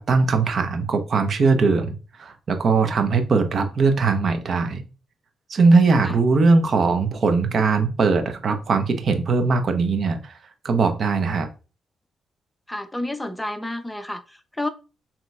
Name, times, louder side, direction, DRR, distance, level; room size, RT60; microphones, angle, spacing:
voice 1, 0.0-4.8 5.5-10.3 10.6-11.5, right 4 dB, 60° right, 0.8 m, -20 dB
voice 2, 12.7-14.7, left 1 dB, 10° left, 0.6 m, -30 dB
6.5 x 2.9 x 2.4 m
supercardioid pair, 55°, 0 cm